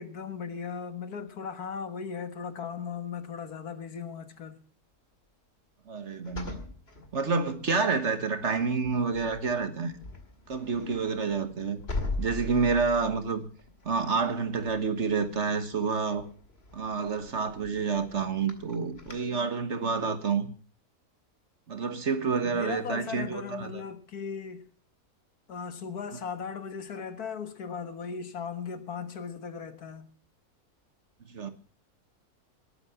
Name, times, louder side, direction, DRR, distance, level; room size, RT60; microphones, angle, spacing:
voice 1, 0.0-4.6 22.5-24.7 25.5-30.1, left 6 dB, 80° left, 2.0 m, -37 dB
voice 2, 5.9-6.6 7.1-9.9 10.5-11.8 12.2-13.5 13.8-16.3 16.7-20.5 21.7-23.8 31.2-31.5, right 5 dB, 50° right, 1.6 m, -28 dB
sound 1, 6.2-7.8 8.3-8.6 8.8-19.1, left 2 dB, 45° left, 2.4 m, -41 dB
20.0 x 8.9 x 5.8 m
omnidirectional pair, 1.6 m